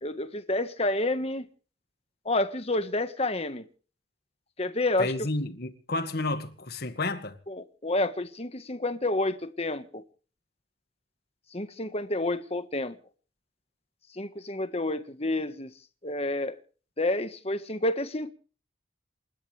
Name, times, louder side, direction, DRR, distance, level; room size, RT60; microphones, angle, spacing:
voice 1, 0.0-1.5 2.2-3.6 4.6-5.1 7.5-10.0 11.5-12.9 14.1-15.7 16.0-16.5 17.0-18.3, left 2 dB, 30° left, 1.6 m, -29 dB
voice 2, 5.0-7.4, left 2 dB, 55° left, 2.0 m, -31 dB
28.5 x 13.0 x 3.5 m
head